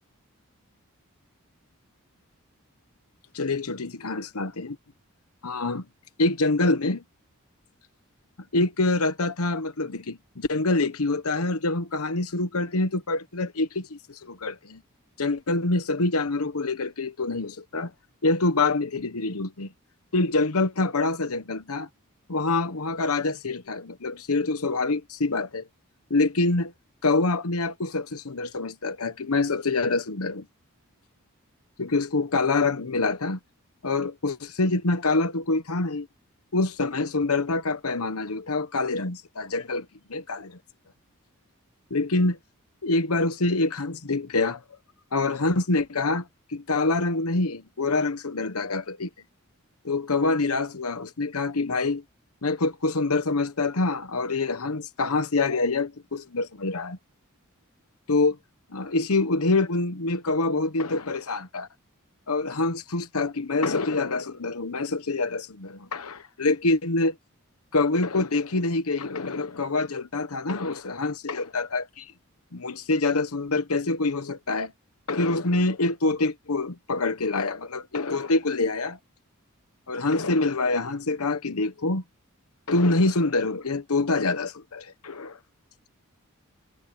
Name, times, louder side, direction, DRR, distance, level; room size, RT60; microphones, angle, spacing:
voice 1, 3.3-4.8 5.4-5.9 6.2-7.0 8.5-14.8 15.2-17.9 18.2-19.7 20.1-21.9 22.3-25.6 26.1-26.7 27.0-30.5 31.8-33.4 33.8-36.1 36.5-40.6 41.9-42.4 42.8-44.6 45.1-49.1 49.8-52.0 52.4-57.0 58.1-58.4 58.7-61.7 62.3-67.2 67.7-72.1 72.5-74.7 75.1-79.0 79.9-82.0 82.7-85.4, left 3 dB, 90° left, 1.1 m, -26 dB
head